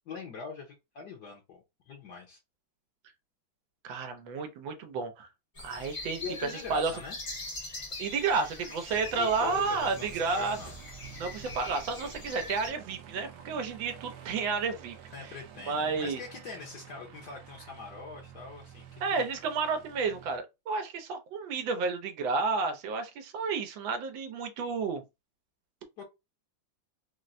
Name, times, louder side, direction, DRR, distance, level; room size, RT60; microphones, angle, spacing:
voice 1, 0.1-2.4 6.2-7.2 9.2-10.7 15.1-19.3 26.0-26.1, left 5 dB, 65° left, 1.3 m, -43 dB
voice 2, 3.8-5.3 5.6-6.2 6.7-6.9 8.0-10.6 11.2-15.0 15.7-16.2 19.0-25.0, right 4 dB, 85° right, 1.5 m, -31 dB
sound 1, 5.5-12.7, left 2 dB, 45° left, 0.4 m, -43 dB
Aircraft, 8.9-20.4, right 8 dB, 65° right, 1.1 m, -50 dB
4.1 x 2.1 x 2.5 m
omnidirectional pair, 2.1 m